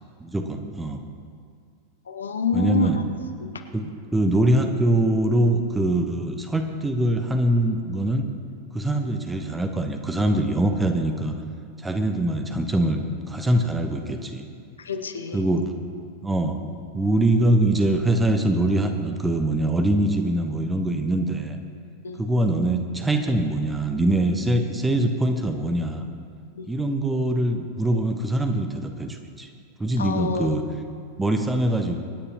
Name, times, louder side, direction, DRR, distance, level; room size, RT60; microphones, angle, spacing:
voice 1, 0.2-1.0 2.5-3.0 3.7-8.2 8.7-11.3 11.8-14.5 15.3-15.7 16.2-16.7 16.9-21.6 22.2-26.1 26.7-29.5 29.8-30.6 31.2-32.0, right 1 dB, 10° right, 6 dB, 1.0 m, -23 dB
voice 2, 2.1-3.1 3.4-3.6 14.8-15.4 22.0-22.2 26.5-26.7 30.0-30.6, left 3 dB, 70° left, 8 dB, 0.8 m, -27 dB
25.0 x 9.8 x 3.0 m, 2.2 s
figure-of-eight pair, 90°, 0 cm